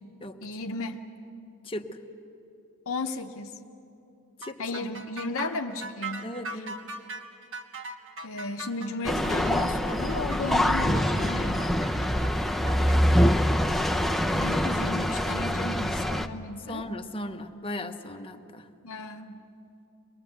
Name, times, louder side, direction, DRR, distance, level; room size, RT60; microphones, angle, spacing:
voice 1, 0.4-1.0 2.9-3.5 4.6-6.6 8.2-11.8 14.3-16.8 18.8-19.4, left 2 dB, 65° left, 4 dB, 0.8 m, -34 dB
sound 1, 4.4-13.0, right 2 dB, 60° right, 1.4 m, -40 dB
voice 2, 6.2-6.8 16.7-18.7, left 1 dB, 25° left, 5 dB, 0.9 m, -36 dB
sound 2, 9.0-16.3, equal, ahead, 0.5 m, -25 dB
23.0 x 21.0 x 8.0 m, 2.7 s
head